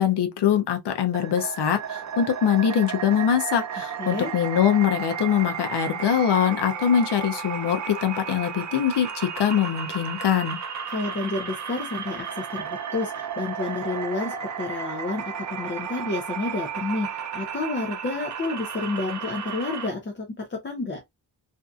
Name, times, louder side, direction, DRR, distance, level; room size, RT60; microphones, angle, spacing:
voice 1, 0.0-10.6, left 9 dB, 75° left, 0.5 m, -23 dB
teapot on glass, 1.1-19.9, right 7 dB, 45° right, 0.5 m, -33 dB
voice 2, 3.7-4.3 10.9-21.0, left 3 dB, 30° left, 0.5 m, -30 dB
2.6 x 2.4 x 2.3 m
wide cardioid pair, 140°, 41 cm